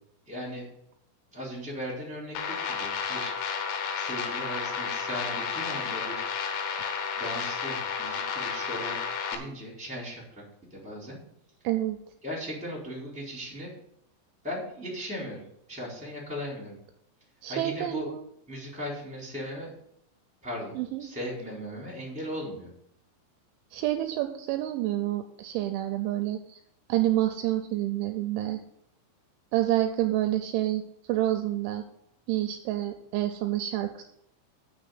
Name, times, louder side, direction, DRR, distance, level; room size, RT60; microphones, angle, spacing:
voice 1, 0.3-0.7 1.3-3.3 3.9-6.2 7.2-9.0 9.3-10.4 10.7-11.2 12.2-13.7 14.4-16.8 17.5-18.1 18.5-19.7 20.4-22.7, equal, ahead, -4 dB, 3.1 m, -37 dB
sound 1, 2.4-9.4, left 6 dB, 80° left, 3.6 m, -32 dB
voice 2, 11.6-12.0 17.4-18.2 20.8-21.1 23.7-26.6 26.9-28.6 29.5-30.8 31.1-31.8 32.3-34.0, right 14 dB, 80° right, 7 dB, 2.9 m, -28 dB
7.4 x 6.3 x 7.7 m, 0.75 s
omnidirectional pair, 5.7 m